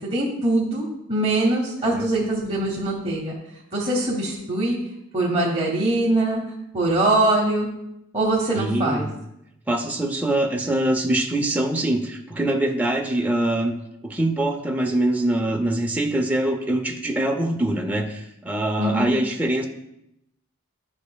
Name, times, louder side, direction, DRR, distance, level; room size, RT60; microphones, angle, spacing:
voice 1, 0.1-3.3 3.7-4.8 5.1-6.4 6.7-7.7 8.1-9.1 18.8-19.1, right 2 dB, 30° right, -3 dB, 0.9 m, -22 dB
voice 2, 8.6-9.1 9.7-13.7 14.0-19.7, right 1 dB, 10° right, 1 dB, 0.5 m, -23 dB
11.0 x 5.2 x 2.3 m, 0.82 s
head